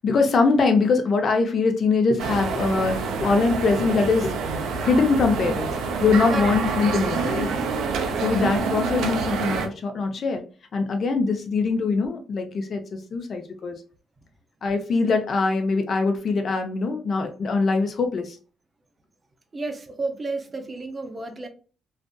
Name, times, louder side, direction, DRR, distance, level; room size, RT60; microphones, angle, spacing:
voice 1, 0.0-4.3 4.8-5.7 6.0-7.5 8.2-10.4 10.7-13.8 14.6-18.4, left 4 dB, 50° left, 0.5 m, -22 dB
sound 1, 2.2-9.7, right 5 dB, 80° right, 0.4 m, -27 dB
voice 2, 19.5-21.5, right 3 dB, 30° right, 0.5 m, -32 dB
2.5 x 2.4 x 2.2 m
cardioid pair, 90°, 0 cm